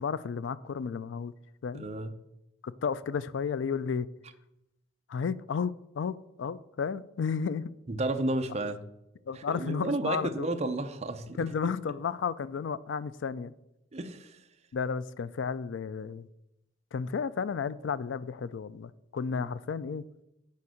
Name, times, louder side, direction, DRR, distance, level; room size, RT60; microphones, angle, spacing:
voice 1, 0.0-1.3 1.6-1.9 2.6-4.1 5.1-7.7 9.3-10.5 11.4-13.5 14.7-16.3 16.9-20.1, left 6 dB, 80° left, 0.4 m, -33 dB
voice 2, 1.7-2.1 7.9-8.8 9.3-11.8 13.9-14.4 19.3-19.5, right 2 dB, 35° right, 0.6 m, -33 dB
8.5 x 4.5 x 6.3 m
head